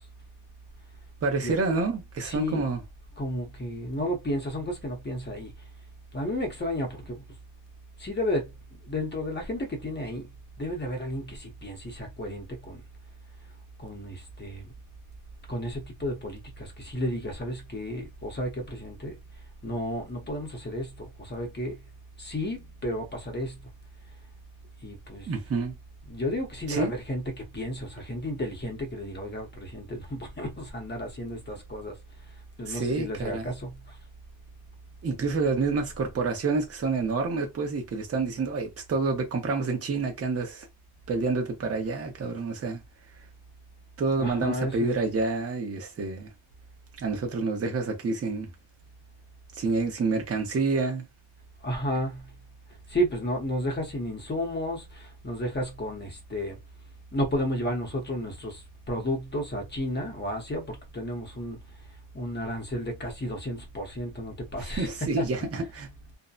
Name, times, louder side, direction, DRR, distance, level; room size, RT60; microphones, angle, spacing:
voice 1, 1.2-2.8 25.3-25.7 26.7-26.9 32.6-33.5 35.0-40.7 41.1-42.8 44.0-46.3 47.0-48.5 49.5-51.1 64.6-65.9, right 3 dB, 30° right, 0.6 m, -28 dB
voice 2, 2.2-2.7 3.2-5.5 6.1-7.2 8.0-8.5 8.9-10.2 10.6-12.8 13.8-14.6 15.5-19.2 19.6-21.7 22.2-23.5 24.8-25.3 26.1-31.9 32.6-33.7 44.2-45.0 51.6-52.2 52.9-54.8 55.2-56.6 57.1-58.6 58.9-61.6 62.1-65.3, equal, 20° left, 0.7 m, -32 dB
2.6 x 2.1 x 2.3 m
wide cardioid pair, 180°, 50 cm